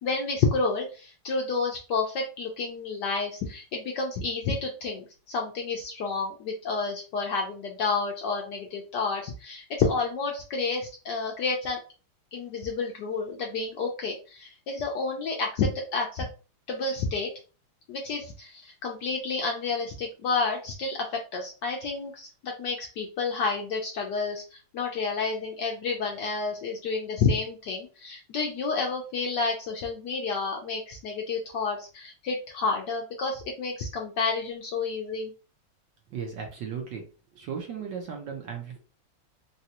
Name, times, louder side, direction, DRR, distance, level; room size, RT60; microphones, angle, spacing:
voice 1, 0.0-11.8 12.3-16.2 16.7-17.3 17.9-35.3, left 4 dB, 70° left, 1 dB, 1.0 m, -30 dB
voice 2, 36.1-37.0 37.3-38.8, right 6 dB, 65° right, 2 dB, 1.2 m, -36 dB
4.0 x 2.3 x 2.8 m, 0.34 s
omnidirectional pair, 2.3 m